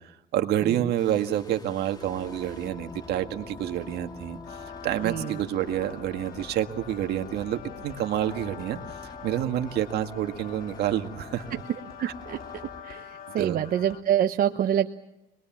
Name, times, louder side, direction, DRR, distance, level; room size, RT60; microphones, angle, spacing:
voice 1, 0.3-4.4 4.8-8.8 9.2-11.6 12.0-12.1 13.4-13.6, right 11 dB, 75° right, 7 dB, 1.8 m, -28 dB
sound 1, 1.0-12.8, left 3 dB, 25° left, 1.7 m, -46 dB
sound 2, 1.9-6.2, right 1 dB, ahead, 6.3 m, -48 dB
sound 3, 4.5-14.0, left 8 dB, 60° left, 2.2 m, -45 dB
voice 2, 5.0-5.4 12.0-12.4 12.8-14.9, right 10 dB, 60° right, 6 dB, 0.9 m, -26 dB
26.0 x 21.0 x 7.4 m, 0.89 s
cardioid pair, 110°, 17 cm